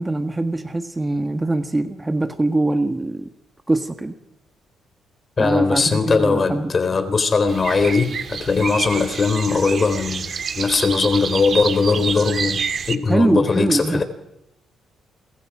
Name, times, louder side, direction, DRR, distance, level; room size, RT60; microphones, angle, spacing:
voice 1, 0.0-3.3 3.7-4.1 5.4-6.7 13.1-14.0, right 2 dB, 15° right, 8 dB, 1.6 m, -22 dB
voice 2, 5.4-10.3 10.6-14.0, left 4 dB, 35° left, 9 dB, 4.0 m, -20 dB
sound 1, 7.5-13.0, right 6 dB, 50° right, 1.9 m, -28 dB
28.5 x 23.0 x 5.1 m, 0.84 s
cardioid pair, 90°, 0 cm